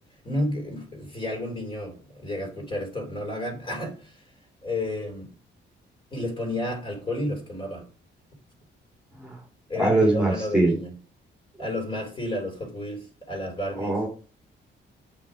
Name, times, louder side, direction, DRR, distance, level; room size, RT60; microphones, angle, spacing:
voice 1, 0.2-4.2 4.6-5.3 6.1-7.9 9.7-10.9 11.6-14.0, left 1 dB, 25° left, 3.3 m, -31 dB
voice 2, 9.8-10.7 13.7-14.1, right 2 dB, 5° right, 2.0 m, -22 dB
8.4 x 5.7 x 4.9 m
cardioid pair, 175°, 20 cm